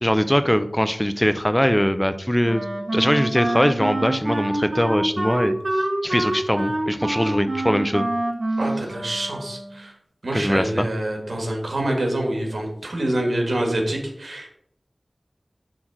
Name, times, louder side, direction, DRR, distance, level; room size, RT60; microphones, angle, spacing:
voice 1, 0.0-2.6 2.9-8.1 10.3-10.9, equal, 10° left, 11 dB, 0.5 m, -21 dB
Wind instrument woodwind instrument, 2.4-9.8, right 1 dB, 60° right, 1.3 m, -26 dB
voice 2, 8.6-9.9 10.2-14.5, right 1 dB, 85° right, 2 dB, 1.7 m, -26 dB
6.2 x 3.7 x 6.0 m, 0.73 s
wide cardioid pair, 55°, 0 cm